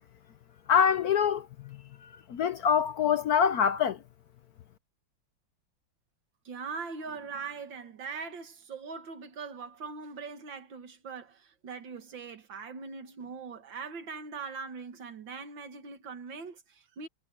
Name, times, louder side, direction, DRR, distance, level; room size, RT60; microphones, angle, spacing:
voice 1, 0.7-1.8 2.3-4.0, left 7 dB, 60° left, 1.1 m, -25 dB
voice 2, 6.5-17.1, right 5 dB, 70° right, 2.4 m, -41 dB
omnidirectional pair, 2.1 m